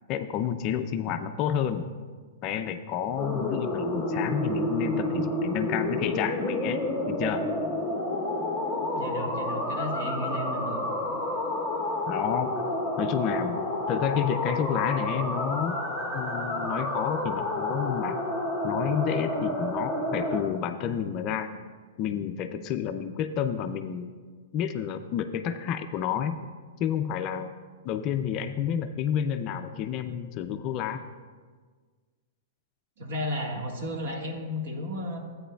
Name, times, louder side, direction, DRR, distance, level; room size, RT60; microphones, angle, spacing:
voice 1, 0.1-1.9 2.4-6.8 7.1-7.4 12.1-12.5 13.0-15.8 16.1-18.2 18.6-21.5 22.0-24.1 24.5-26.3 26.8-27.5 27.8-31.0, left 9 dB, 30° left, 8 dB, 0.3 m, -30 dB
sound 1, 3.2-20.4, left 1 dB, 30° right, 1.7 m, -30 dB
voice 2, 8.9-10.8 33.0-35.2, left 1 dB, 55° right, 2 dB, 1.4 m, -33 dB
13.5 x 8.9 x 2.3 m, 1.5 s
supercardioid pair, 170°, 0 cm